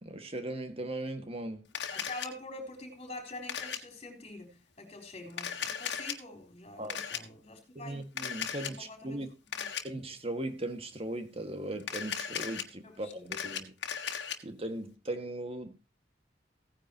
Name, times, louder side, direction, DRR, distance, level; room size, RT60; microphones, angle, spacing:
voice 1, 0.0-1.6 6.8-7.0 7.7-9.3 9.8-13.7 14.4-15.8, right 1 dB, 35° right, 1.8 m, -38 dB
Camera, 1.7-2.3 3.5-3.8 5.3-6.1 6.9-7.2 8.2-8.7 9.5-9.8 11.8-12.6 13.1-14.4, left 8 dB, 90° left, 1.6 m, -36 dB
voice 2, 1.9-8.1 8.6-9.3 9.6-9.7 12.8-13.4, left 2 dB, 35° left, 4.1 m, -46 dB
16.5 x 10.0 x 2.9 m
head